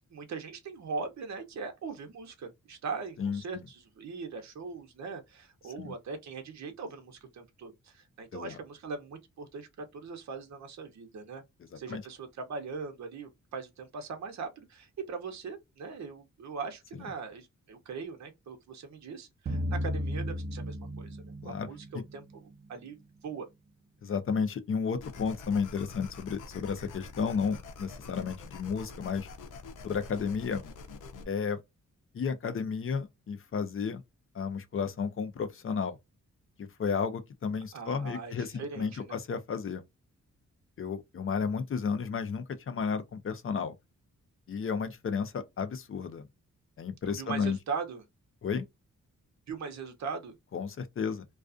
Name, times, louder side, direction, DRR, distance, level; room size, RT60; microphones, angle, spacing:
voice 1, 0.1-11.4 11.7-21.2 21.4-22.4 22.7-23.0 23.2-23.5 37.7-39.2 47.1-48.0 49.5-50.3, right 5 dB, 65° right, 0.7 m, -40 dB
voice 2, 3.2-3.7 5.8-5.9 8.3-8.6 11.7-12.0 17.0-17.1 19.5-19.8 21.4-21.7 21.9-22.0 24.0-29.3 29.8-30.6 31.3-31.6 32.1-34.0 34.3-36.0 36.6-39.8 40.8-43.7 44.5-46.3 46.8-47.6 48.4-48.6 50.5-51.2, left 6 dB, 45° left, 0.5 m, -33 dB
sound 1, 19.5-21.9, equal, 35° right, 0.4 m, -34 dB
sound 2, 25.0-31.2, left 3 dB, 90° left, 0.6 m, -46 dB
2.3 x 2.3 x 2.4 m
wide cardioid pair, 140°, 30 cm